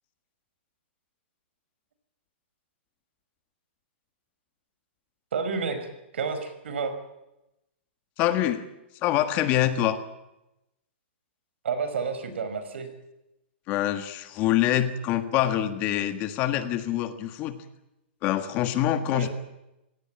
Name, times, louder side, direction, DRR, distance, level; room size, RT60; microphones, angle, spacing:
voice 1, 5.3-6.9 11.6-12.9 19.1-19.3, right 5 dB, 75° right, 10 dB, 5.5 m, -30 dB
voice 2, 8.2-8.6 9.0-10.0 13.7-17.6 18.2-19.3, left 12 dB, 25° left, 10 dB, 1.5 m, -25 dB
24.5 x 17.5 x 8.8 m, 0.89 s
hypercardioid pair, 170°, 6 cm